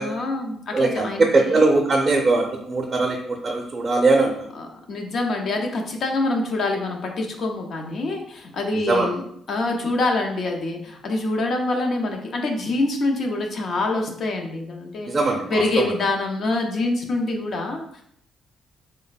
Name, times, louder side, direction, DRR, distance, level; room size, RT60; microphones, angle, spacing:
voice 1, 0.0-1.8 4.5-15.1 15.5-18.0, left 2 dB, 60° left, 2 dB, 0.5 m, -25 dB
voice 2, 0.7-4.5 8.9-9.1 15.1-15.9, right 3 dB, 30° right, 0 dB, 0.5 m, -21 dB
3.2 x 2.1 x 4.0 m, 0.69 s
cardioid pair, 90°, 0 cm